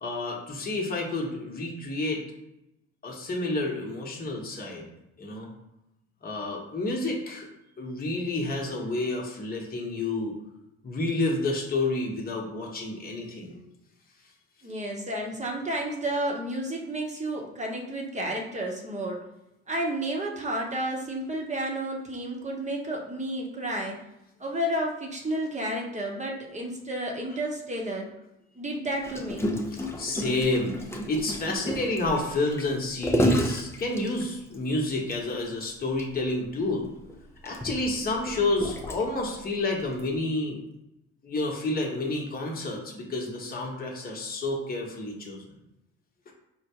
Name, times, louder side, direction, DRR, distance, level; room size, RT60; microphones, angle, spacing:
voice 1, 0.0-2.2 3.0-4.8 5.2-5.5 6.2-7.5 7.8-10.3 10.8-13.6 29.7-30.7 31.1-36.9 37.4-40.6 41.2-45.4, left 2 dB, 30° left, -1 dB, 0.9 m, -29 dB
voice 2, 14.6-19.2 19.7-24.0 24.4-28.1 28.5-29.4, right 1 dB, 20° right, 0 dB, 0.9 m, -31 dB
Gurgling, 29.0-34.6 35.1-35.2 35.5-35.7 36.0-36.1 36.9-39.3 40.0-40.1, equal, 10° left, 0.6 m, -30 dB
4.4 x 2.1 x 2.9 m, 0.89 s
hypercardioid pair, 60°, 31 cm